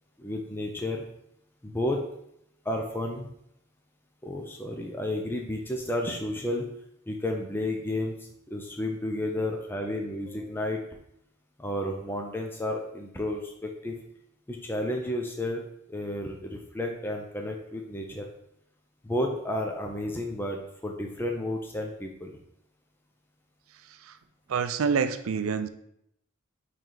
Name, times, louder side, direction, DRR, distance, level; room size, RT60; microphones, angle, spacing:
voice 1, 0.2-1.0 1.6-2.0 2.6-3.3 4.2-6.7 7.1-10.8 11.6-14.0 14.5-15.6 15.9-18.3 19.0-22.3, left 1 dB, 10° left, 1 dB, 0.6 m, -32 dB
voice 2, 24.5-25.7, right 6 dB, 80° right, 10 dB, 0.5 m, -27 dB
9.0 x 3.3 x 3.9 m, 0.75 s
head